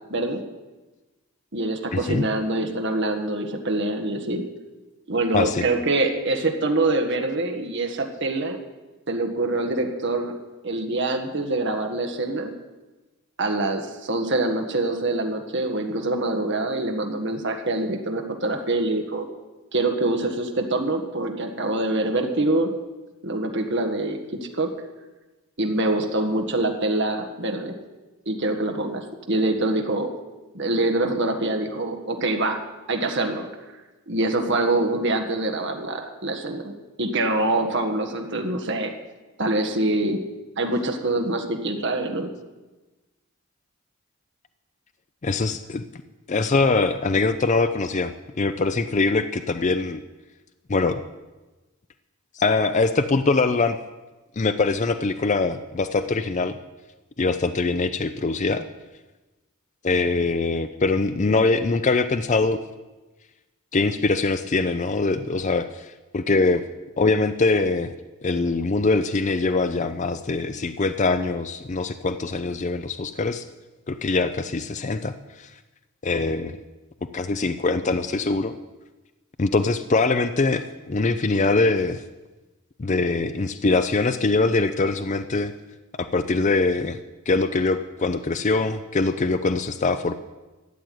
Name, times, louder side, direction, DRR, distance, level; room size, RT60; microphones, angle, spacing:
voice 1, 0.1-0.4 1.5-4.4 5.1-8.6 9.1-10.3 10.6-12.5 13.4-19.3 19.7-22.7 23.2-24.7 25.6-27.7 28.3-30.1 30.5-32.6 32.9-33.5 34.1-38.9 39.4-40.2 40.6-42.3, right 2 dB, 55° right, 4 dB, 1.5 m, -25 dB
voice 2, 1.9-2.2 5.3-5.6 45.2-45.8 46.3-48.1 48.4-50.0 50.7-51.0 52.4-53.8 54.4-56.6 57.2-58.6 59.8-62.6 63.7-66.6 67.0-67.9 68.2-73.5 73.9-75.5 76.0-76.5 77.1-78.5 79.4-82.0 82.8-85.5 86.0-87.0 87.3-90.1, left 3 dB, 35° left, 10 dB, 0.5 m, -23 dB
13.5 x 7.9 x 9.3 m, 1.2 s
head